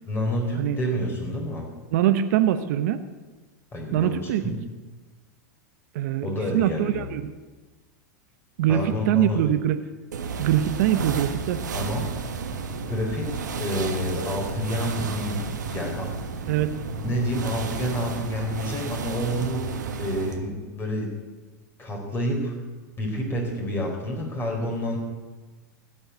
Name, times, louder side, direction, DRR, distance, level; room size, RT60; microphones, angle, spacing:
voice 1, 0.1-1.7 3.7-4.6 6.2-7.0 8.7-9.4 11.7-12.1 12.8-16.1 17.0-21.2 21.8-22.6 23.0-25.0, equal, 25° left, 1 dB, 4.0 m, -29 dB
voice 2, 1.9-3.0 3.9-4.5 5.9-6.3 6.5-7.3 8.6-9.8 10.4-11.6 16.5-16.7, right 11 dB, 65° right, 10 dB, 0.9 m, -23 dB
sound 1, 10.1-20.4, right 4 dB, 90° right, 1.4 m, -32 dB
15.5 x 7.8 x 8.2 m, 1.3 s
hypercardioid pair, 105°, 9 cm